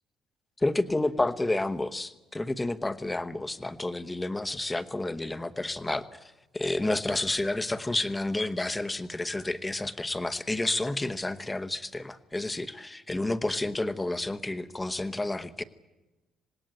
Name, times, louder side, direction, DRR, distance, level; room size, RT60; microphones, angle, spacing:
voice 1, 0.6-6.2 6.5-15.6, left 2 dB, 10° left, 12 dB, 1.0 m, -30 dB
26.0 x 19.5 x 9.0 m, 1.1 s
cardioid pair, 145°, 0 cm